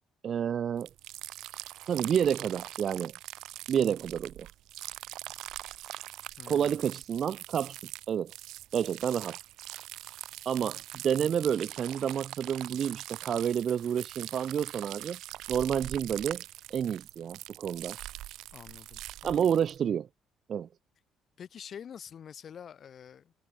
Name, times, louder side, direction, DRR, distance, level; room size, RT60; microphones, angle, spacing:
voice 1, 0.2-0.9 1.9-3.1 3.7-4.5 6.5-7.8 8.1-8.3 8.7-9.4 10.5-15.2 15.5-16.4 16.7-18.0 19.2-20.1 20.5-20.7, right 8 dB, 40° right, 1.8 m, -29 dB
sound 1, 0.8-19.8, right 15 dB, 75° right, 4.7 m, -43 dB
voice 2, 6.4-6.8 18.5-19.5 21.4-23.3, left 8 dB, 40° left, 3.4 m, -47 dB
cardioid pair, 155°, 0 cm